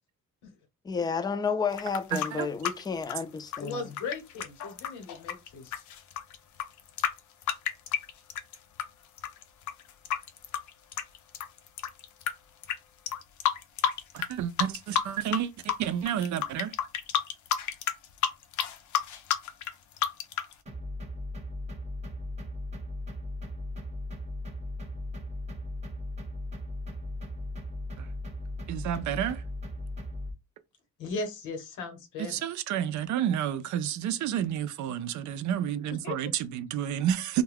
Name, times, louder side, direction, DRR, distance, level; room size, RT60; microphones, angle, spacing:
voice 1, 0.8-3.8, left 5 dB, 15° left, 0.3 m, -31 dB
sound 1, 1.7-8.8 9.2-12.3 12.6-12.8 13.1-14.3 14.6-15.4 15.6-20.5, left 9 dB, 75° left, 0.6 m, -30 dB
voice 2, 2.1-2.5 14.1-16.8 28.0-28.1 28.7-29.4 32.2-37.4, right 10 dB, 70° right, 0.5 m, -30 dB
voice 3, 3.6-5.8 31.0-32.4 36.0-36.1, left 3 dB, 90° left, 1.0 m, -37 dB
sound 2, 20.7-30.3, left 1 dB, 20° right, 0.9 m, -37 dB
2.3 x 2.2 x 3.3 m
cardioid pair, 90°, 30 cm